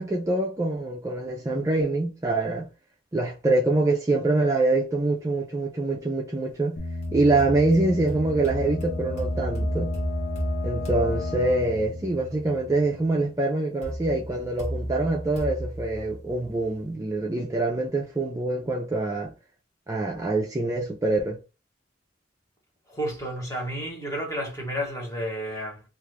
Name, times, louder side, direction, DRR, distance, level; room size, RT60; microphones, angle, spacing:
voice 1, 0.0-2.7 3.1-6.8 7.1-9.9 10.6-19.3 19.9-21.4, right 2 dB, 15° right, 0.4 m, -25 dB
sound 1, 6.8-13.4, left 3 dB, 60° left, 0.6 m, -34 dB
sound 2, 7.0-12.0 13.8-16.8, right 1 dB, 35° left, 1.0 m, -33 dB
voice 2, 22.9-25.8, equal, 15° left, 1.2 m, -31 dB
2.5 x 2.4 x 3.2 m
head